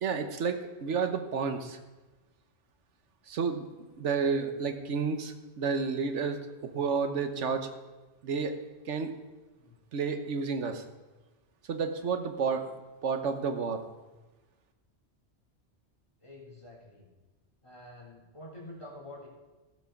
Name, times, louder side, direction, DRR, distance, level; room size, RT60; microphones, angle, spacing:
voice 1, 0.0-1.8 3.3-3.7 4.0-7.7 8.2-8.5 8.9-9.1 9.9-10.8 11.7-12.6 13.0-13.8, right 5 dB, 90° right, 7 dB, 1.3 m, -30 dB
voice 2, 16.2-17.1 17.6-19.3, left 1 dB, 25° left, -4 dB, 3.7 m, -47 dB
15.5 x 7.5 x 5.8 m, 1.2 s
omnidirectional pair, 1.2 m